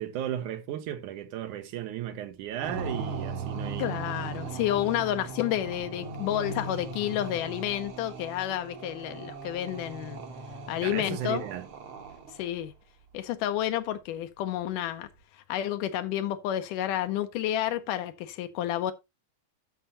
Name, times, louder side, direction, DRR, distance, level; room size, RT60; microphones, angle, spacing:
voice 1, 0.0-4.0 10.8-11.7, right 11 dB, 70° right, 2.3 m, -35 dB
sound 1, 2.6-12.5, right 3 dB, 55° right, 1.7 m, -38 dB
voice 2, 3.8-10.2 10.7-11.4 12.3-12.7 13.1-15.1 15.5-18.9, left 12 dB, 75° left, 2.2 m, -30 dB
12.0 x 5.5 x 3.9 m
omnidirectional pair, 3.9 m